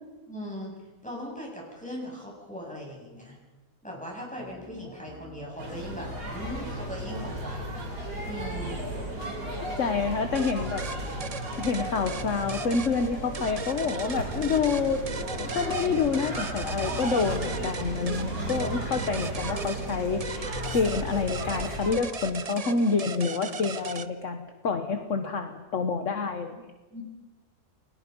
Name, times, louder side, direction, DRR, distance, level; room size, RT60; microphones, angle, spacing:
voice 1, 0.3-0.7 1.0-3.4 3.8-7.9 8.2-8.8 26.9-27.0, equal, 5° left, -2 dB, 7.5 m, -39 dB
sound 1, 4.4-18.7, right 1 dB, 15° right, 2.4 m, -48 dB
sound 2, 5.6-21.9, right 1 dB, 90° right, 5.1 m, -35 dB
voice 2, 9.5-10.8 11.6-15.0 15.4-26.6, left 5 dB, 50° left, 6 dB, 1.5 m, -28 dB
sound 3, 10.3-24.1, right 5 dB, 40° right, 0.5 m, -39 dB
29.5 x 22.0 x 5.4 m, 1.2 s
omnidirectional pair, 1.7 m